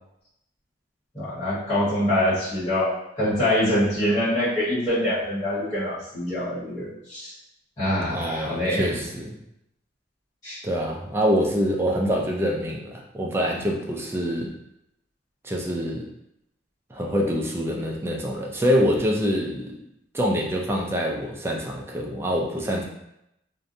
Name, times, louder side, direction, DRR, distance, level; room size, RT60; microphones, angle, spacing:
voice 1, 1.1-7.3 7.8-9.1 10.4-10.6, left 1 dB, 20° left, -13 dB, 1.2 m, -25 dB
voice 2, 8.1-9.4 10.6-14.5 15.4-16.0 16.9-19.8 20.1-22.8, equal, 15° right, -1 dB, 0.3 m, -25 dB
2.6 x 2.1 x 2.5 m, 0.81 s
head